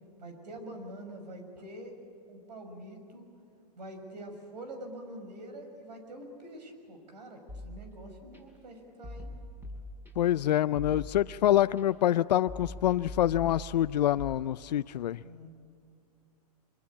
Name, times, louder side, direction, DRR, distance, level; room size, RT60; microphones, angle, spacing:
voice 1, 0.2-1.9 2.3-3.3 3.8-9.3 15.2-15.5, right 1 dB, 85° right, 6 dB, 6.4 m, -45 dB
sound 1, 7.5-8.4 9.0-10.4 10.7-11.8 12.5-14.3, left 1 dB, 10° right, 6.6 m, -43 dB
voice 2, 10.2-15.2, left 12 dB, 85° left, 14 dB, 0.5 m, -26 dB
25.5 x 24.0 x 8.8 m, 2.6 s
hypercardioid pair, 130°, 21 cm